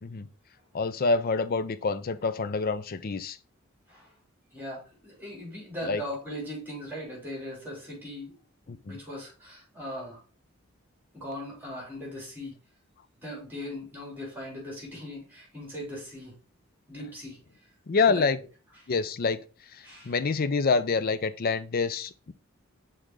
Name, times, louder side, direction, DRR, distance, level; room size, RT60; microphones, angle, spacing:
voice 1, 0.7-3.4 5.9-6.0 8.9-9.0 17.9-18.4 18.9-19.4 20.0-22.3, left 4 dB, 45° left, 0.5 m, -26 dB
voice 2, 4.5-8.3 8.7-10.2 11.1-12.5 13.2-16.3 16.9-17.4 18.0-18.3 19.8-20.1, equal, 10° right, 3.5 m, -39 dB
6.5 x 3.8 x 3.8 m
head